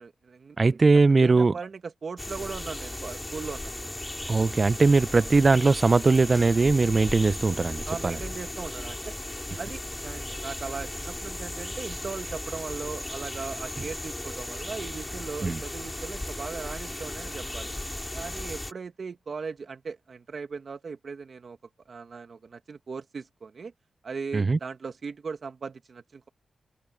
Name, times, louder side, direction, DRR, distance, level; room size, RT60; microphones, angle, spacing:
voice 1, 0.0-0.8 1.1-3.9 7.9-9.2 9.6-17.7 18.1-21.6 21.9-23.7 24.0-26.3, right 5 dB, 60° right, 2.0 m, -38 dB
voice 2, 0.6-1.5 4.3-8.2 15.4-15.6 24.3-24.6, right 3 dB, 40° right, 0.5 m, -20 dB
sound 1, 2.2-18.7, left 1 dB, 15° left, 4.1 m, -36 dB
open air
cardioid pair, 80°, 0 cm